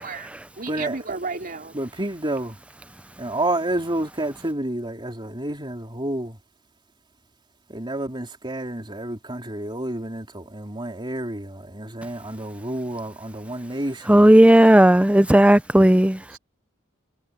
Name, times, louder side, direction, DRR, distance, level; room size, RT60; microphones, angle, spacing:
voice 1, 0.0-1.8 16.3-16.4, right 4 dB, 40° right, 3.7 m, -33 dB
voice 2, 1.7-2.6 3.2-6.4 7.7-14.3, right 1 dB, 20° right, 3.6 m, -29 dB
voice 3, 14.1-16.2, right 1 dB, 5° right, 0.6 m, -13 dB
head